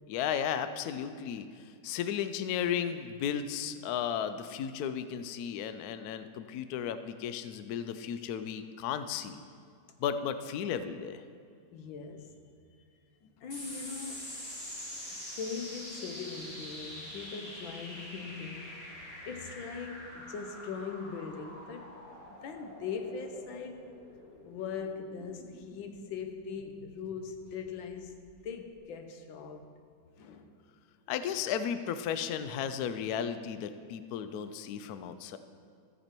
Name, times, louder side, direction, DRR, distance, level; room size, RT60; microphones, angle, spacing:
voice 1, 0.1-1.5 1.8-9.4 10.0-11.2 31.1-35.4, left 8 dB, 70° left, 0.9 m, -34 dB
voice 2, 6.2-6.6 11.7-12.4 13.2-14.3 15.1-18.7 19.3-22.0 22.3-23.9 24.4-29.7 30.1-30.5 31.3-31.4, left 5 dB, 90° left, 1.6 m, -41 dB
sound 1, 13.5-28.3, equal, 30° left, 2.4 m, -46 dB
14.5 x 6.9 x 4.5 m
omnidirectional pair, 2.1 m